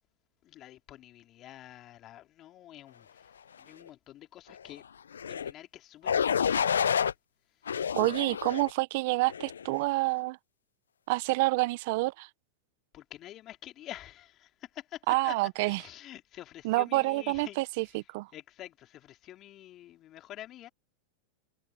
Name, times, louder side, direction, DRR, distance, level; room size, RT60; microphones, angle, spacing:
voice 1, 0.4-4.8 5.2-6.8 12.9-18.0 18.3-20.7, left 13 dB, 40° left, 3.0 m, -48 dB
sound 1, 5.1-5.5 6.0-7.1 7.7-8.7 9.3-9.7, left 7 dB, 85° left, 0.4 m, -29 dB
voice 2, 8.0-10.4 11.1-12.3 15.1-15.8 16.6-18.3, right 23 dB, 60° right, 0.7 m, -28 dB
hypercardioid pair, 100°, 0 cm